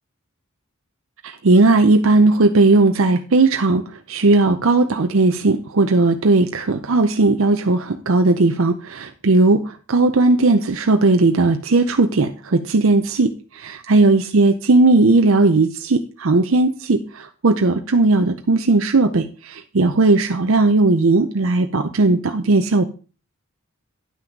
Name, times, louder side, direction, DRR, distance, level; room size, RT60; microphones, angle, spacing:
voice 1, 1.2-3.8 4.1-22.9, right 3 dB, 65° right, 6 dB, 0.7 m, -17 dB
9.6 x 5.8 x 5.2 m, 0.36 s
head